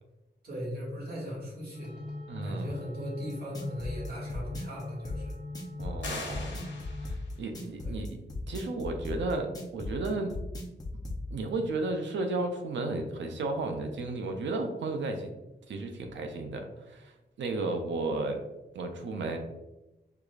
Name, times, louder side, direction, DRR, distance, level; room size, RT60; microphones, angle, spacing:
voice 1, 0.4-1.9 2.4-5.3 7.8-8.0, equal, 55° right, -5 dB, 1.4 m, -38 dB
sound 1, 1.7-7.1, left 2 dB, 5° right, 1.5 m, -42 dB
voice 2, 2.3-2.7 5.8-6.6 7.0-8.1 8.5-10.3 11.3-15.3 15.7-18.4 18.7-19.4, right 2 dB, 90° right, 5 dB, 0.5 m, -33 dB
sound 2, 3.3-11.2, left 2 dB, 20° left, 0.6 m, -37 dB
sound 3, 6.0-7.4, left 3 dB, 75° left, 0.9 m, -41 dB
4.7 x 2.4 x 2.3 m, 1.0 s
wide cardioid pair, 125°, 19 cm